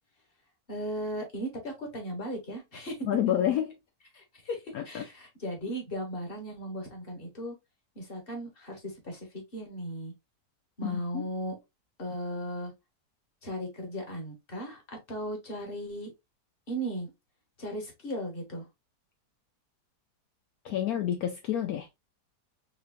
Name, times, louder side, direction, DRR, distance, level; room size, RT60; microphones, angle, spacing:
voice 1, 0.7-3.1 4.1-7.5 7.9-9.3 9.5-10.1 10.8-11.6 12.0-12.7 13.4-16.1 16.7-17.1 17.6-18.7, equal, 35° left, 1.5 m, -36 dB
voice 2, 3.0-3.7 4.7-5.1 10.8-11.3 20.6-21.9, left 10 dB, 70° left, 1.0 m, -29 dB
4.8 x 3.3 x 2.5 m
omnidirectional pair, 1.8 m